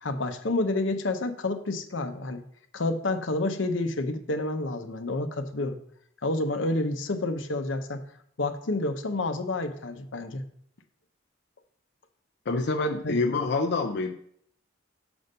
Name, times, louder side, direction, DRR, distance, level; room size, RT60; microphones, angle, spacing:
voice 1, 0.0-2.4 2.7-5.8 6.2-8.0 8.4-10.4 13.0-13.1, left 2 dB, 80° left, 7 dB, 0.8 m, -29 dB
voice 2, 12.5-14.1, left 3 dB, 60° left, 2 dB, 0.5 m, -26 dB
7.0 x 5.2 x 5.4 m, 0.68 s
head